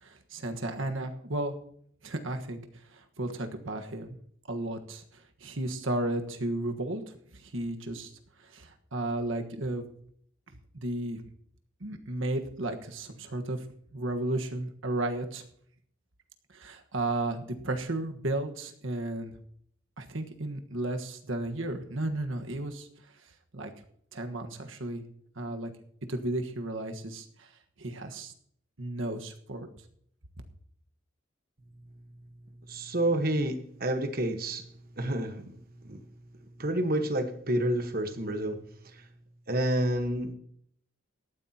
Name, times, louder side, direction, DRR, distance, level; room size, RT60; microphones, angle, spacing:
voice 1, 0.0-1.5 2.0-2.6 2.9-4.2 4.5-5.0 5.4-7.0 7.3-8.1 8.5-9.8 10.7-11.2 11.8-13.6 13.9-15.4 16.5-19.3 20.0-22.9 23.5-23.7 24.1-25.0 25.4-25.7 26.1-27.5 27.8-28.3 28.8-29.7, right 1 dB, 75° right, 5 dB, 1.4 m, -33 dB
voice 2, 32.7-34.7 35.0-35.5 35.8-36.0 36.6-38.6 38.8-39.0 39.5-40.3, right 1 dB, 45° right, 7 dB, 1.3 m, -29 dB
18.5 x 13.5 x 2.9 m, 0.64 s
head